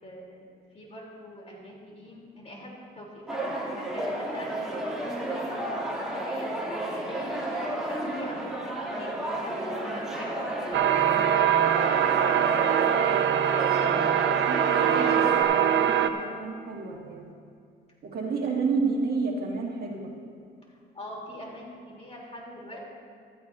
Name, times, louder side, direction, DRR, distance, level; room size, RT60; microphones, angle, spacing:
voice 1, 0.0-6.5 6.9-10.4 10.7-12.1 18.0-18.4 20.9-22.8, left 1 dB, 30° left, -2 dB, 3.4 m, -43 dB
sound 1, 3.3-15.4, right 1 dB, 5° right, 2.7 m, -32 dB
sound 2, 10.7-16.1, right 9 dB, 65° right, 0.6 m, -23 dB
voice 2, 14.5-17.2 18.1-20.1, right 4 dB, 50° right, -1 dB, 1.8 m, -30 dB
15.5 x 13.0 x 2.7 m, 2.2 s
cardioid pair, 90°, 20 cm